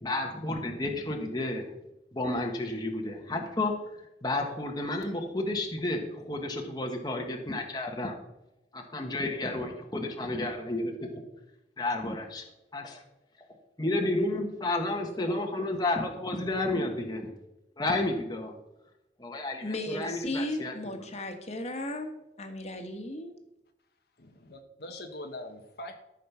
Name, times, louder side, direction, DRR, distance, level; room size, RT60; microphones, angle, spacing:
voice 1, 0.0-1.7 2.1-3.7 4.2-8.1 8.7-11.1 11.8-12.4 12.7-13.0 13.8-17.3 17.8-18.6 19.2-20.7, left 2 dB, 25° left, 2 dB, 1.3 m, -31 dB
voice 2, 19.6-23.3, left 1 dB, 40° left, 5 dB, 1.7 m, -35 dB
voice 3, 24.2-25.9, left 1 dB, 60° left, 4 dB, 1.1 m, -42 dB
13.5 x 6.6 x 5.7 m, 0.91 s
head